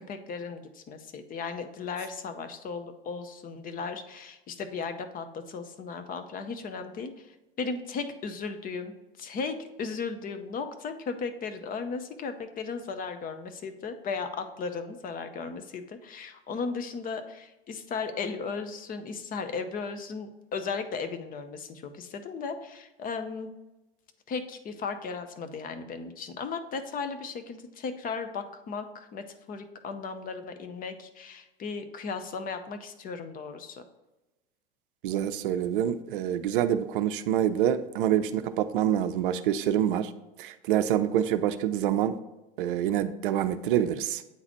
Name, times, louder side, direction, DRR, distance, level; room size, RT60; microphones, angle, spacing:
voice 1, 0.0-8.9 9.2-23.5 24.3-33.8, left 5 dB, 30° left, 8 dB, 0.7 m, -36 dB
voice 2, 35.0-40.1 40.4-42.2 42.6-44.2, right 10 dB, 65° right, 11 dB, 0.5 m, -26 dB
8.7 x 3.9 x 3.0 m, 1.0 s
hypercardioid pair, 85°, 29 cm